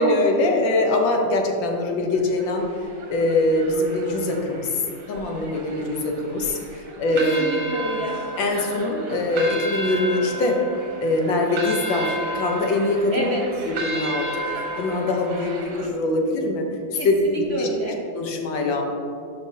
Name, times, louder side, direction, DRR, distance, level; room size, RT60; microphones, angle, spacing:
voice 1, 0.0-2.7 3.1-4.7 5.1-7.6 8.4-10.6 11.0-13.3 13.7-14.3 14.8-17.7 18.1-18.8, left 2 dB, 85° left, 2 dB, 1.7 m, -23 dB
sound 1, 2.1-15.9, right 1 dB, 70° right, 1.8 m, -33 dB
voice 2, 7.1-8.2 8.8-8.9 13.1-13.6 16.9-18.0, right 1 dB, 45° right, -2 dB, 0.9 m, -30 dB
12.5 x 5.3 x 2.8 m, 2.6 s
omnidirectional pair, 2.0 m